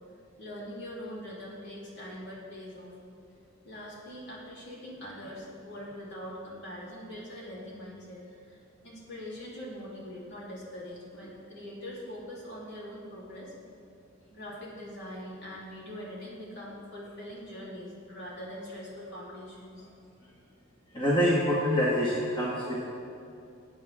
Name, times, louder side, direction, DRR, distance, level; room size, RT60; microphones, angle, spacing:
voice 1, 0.4-3.0 3.6-8.2 8.5-13.5 14.3-19.9, equal, 55° left, -6 dB, 3.4 m, -42 dB
voice 2, 20.9-22.9, equal, 25° left, -6 dB, 1.8 m, -26 dB
19.0 x 8.8 x 3.7 m, 2.7 s
head